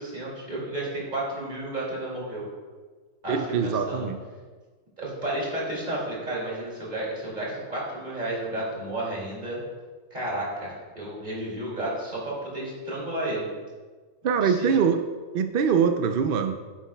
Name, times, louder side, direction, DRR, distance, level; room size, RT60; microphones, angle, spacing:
voice 1, 0.0-2.4 3.2-4.1 5.0-9.6 10.1-13.5 14.4-14.7, right 1 dB, 30° right, -5 dB, 2.6 m, -32 dB
voice 2, 3.3-4.2 14.2-15.0 15.3-16.6, right 6 dB, 75° right, 6 dB, 0.5 m, -23 dB
9.5 x 8.3 x 2.3 m, 1.4 s
omnidirectional pair, 1.5 m